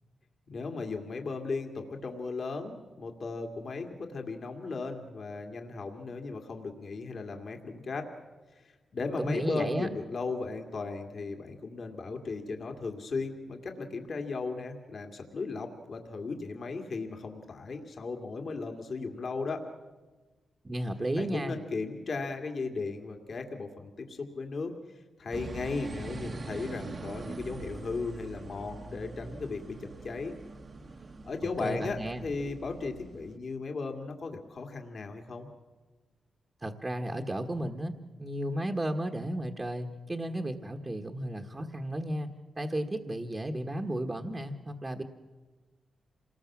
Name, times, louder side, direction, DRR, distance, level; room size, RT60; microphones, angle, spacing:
voice 1, 0.5-8.1 8.5-19.6 21.2-24.7 25.2-30.3 31.2-35.5, left 4 dB, 50° left, 4 dB, 2.2 m, -36 dB
voice 2, 9.2-9.9 20.6-21.6 31.6-32.2 36.6-37.9 38.2-42.3 42.5-45.0, right 1 dB, 20° right, 3 dB, 1.4 m, -33 dB
sound 1, 25.3-33.4, right 3 dB, 40° right, 1.3 m, -43 dB
27.5 x 20.0 x 7.3 m, 1.3 s
wide cardioid pair, 115°, 0 cm